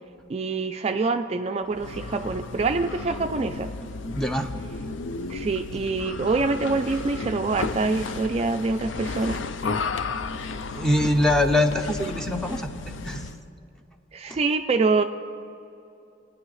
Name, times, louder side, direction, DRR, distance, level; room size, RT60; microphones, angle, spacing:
voice 1, 0.3-3.7 5.3-9.4 14.1-15.0, right 3 dB, 35° right, 7 dB, 0.3 m, -25 dB
sound 1, 1.7-13.4, left 3 dB, 80° left, 0.5 m, -33 dB
voice 2, 4.1-4.5 10.7-13.3 14.3-14.4, left 1 dB, 5° left, 5 dB, 0.7 m, -24 dB
27.5 x 9.6 x 3.2 m, 2.7 s
head